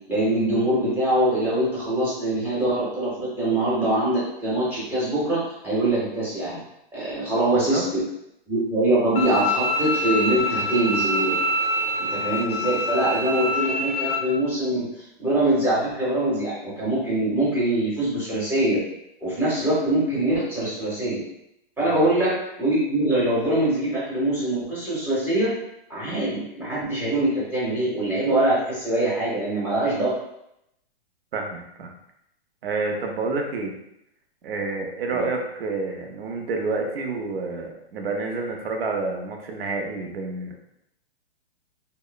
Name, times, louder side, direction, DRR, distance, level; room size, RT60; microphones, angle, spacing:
voice 1, 0.1-6.6 6.9-8.0 8.5-11.4 12.0-14.9 15.2-18.8 19.2-21.2 21.8-25.5 25.9-30.1 35.1-35.3, right 1 dB, 5° right, -9 dB, 0.6 m, -23 dB
Bowed string instrument, 9.2-14.2, left 1 dB, 70° left, 0.5 m, -25 dB
voice 2, 31.3-31.9 32.6-33.8 34.4-40.6, right 3 dB, 70° right, 2 dB, 0.6 m, -29 dB
2.9 x 2.0 x 2.2 m, 0.79 s
hypercardioid pair, 150°, 31 cm